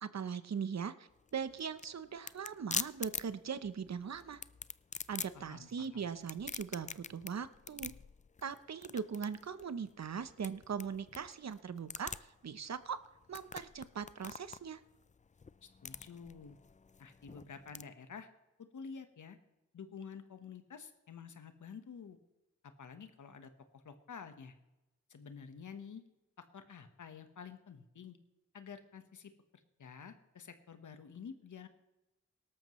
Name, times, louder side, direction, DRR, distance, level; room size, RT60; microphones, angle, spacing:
voice 1, 0.0-4.4 5.1-7.9 8.4-13.0 13.3-14.8, right 6 dB, 60° right, 13 dB, 0.9 m, -40 dB
sound 1, 1.1-17.8, left 5 dB, 25° left, 0.4 m, -45 dB
voice 2, 5.3-6.0 15.6-16.6 17.0-18.3 18.7-19.4 19.7-22.2 22.8-24.5 25.1-26.0 26.5-28.2 28.5-29.3 29.8-31.7, left 6 dB, 80° left, 9 dB, 1.3 m, -50 dB
18.0 x 13.0 x 3.2 m, 0.99 s
cardioid pair, 65°, 30 cm